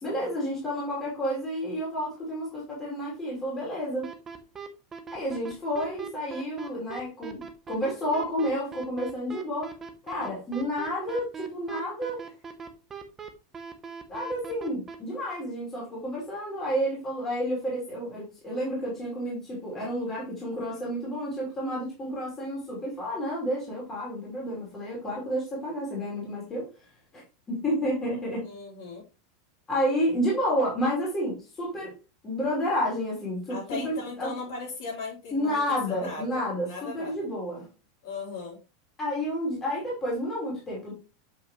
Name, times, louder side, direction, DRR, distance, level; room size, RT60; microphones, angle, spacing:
voice 1, 0.0-4.1 5.1-9.7 10.0-12.2 14.1-26.7 27.1-27.2 27.5-28.5 29.7-31.9 32.2-33.6 33.8-34.3 35.3-37.7 39.0-40.9, equal, 15° left, -5 dB, 2.9 m, -30 dB
sound 1, 4.0-15.0, right 6 dB, 15° right, 0.7 m, -40 dB
voice 2, 28.4-29.0 33.5-37.3 38.0-38.6, left 4 dB, 60° left, -3 dB, 3.9 m, -38 dB
7.1 x 5.5 x 3.0 m, 0.30 s
supercardioid pair, 180°, 2 cm